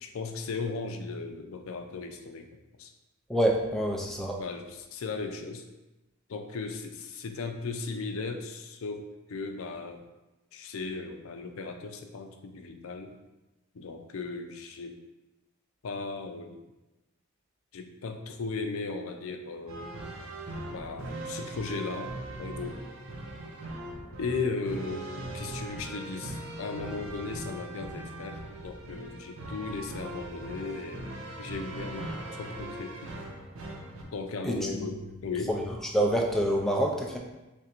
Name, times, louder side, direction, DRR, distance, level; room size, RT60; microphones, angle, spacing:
voice 1, 0.0-2.9 4.4-4.6 4.9-5.6 6.3-9.0 9.3-10.0 10.5-13.1 13.7-15.0 15.8-16.6 17.7-19.9 20.7-22.1 22.4-22.8 24.2-33.1 34.0-35.0 35.2-35.5, left 4 dB, 85° left, 5 dB, 0.5 m, -36 dB
voice 2, 3.3-4.4 34.4-34.8 35.5-37.2, right 1 dB, ahead, 0 dB, 0.4 m, -27 dB
sound 1, 19.7-34.0, right 2 dB, 75° right, 0.6 m, -40 dB
3.3 x 2.5 x 4.3 m, 1.1 s
head